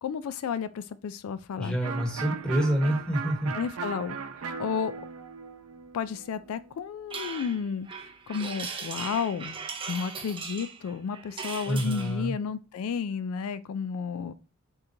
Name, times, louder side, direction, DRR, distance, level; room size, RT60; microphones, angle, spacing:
voice 1, 0.0-1.8 3.5-4.2 4.6-4.9 5.9-9.6 9.9-14.3, left 6 dB, 80° left, 0.3 m, -32 dB
voice 2, 1.6-3.5 11.7-12.3, right 1 dB, 5° left, 1.0 m, -27 dB
Electric guitar, 1.8-7.4, right 6 dB, 85° right, 0.6 m, -38 dB
sound 1, 7.1-12.2, right 5 dB, 25° right, 0.5 m, -38 dB
4.4 x 3.7 x 2.6 m
head